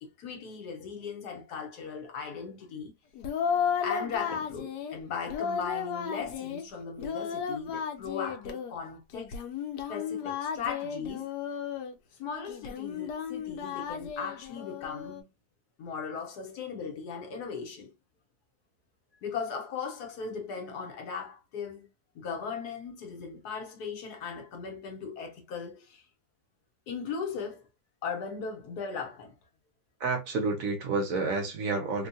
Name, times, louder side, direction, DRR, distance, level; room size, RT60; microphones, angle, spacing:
voice 1, 0.0-2.9 3.8-9.4 9.9-11.3 12.2-15.3 15.8-17.9 19.2-21.9 22.1-26.0 26.9-27.7 28.0-29.3, left 5 dB, 70° left, 1.4 m, -38 dB
Singing, 3.1-5.0 5.3-6.6 7.0-8.7 9.1-12.0 12.5-15.2, left 7 dB, 90° left, 1.2 m, -34 dB
voice 2, 30.0-32.1, right 3 dB, 65° right, 1.0 m, -29 dB
3.5 x 2.3 x 2.6 m
omnidirectional pair, 1.8 m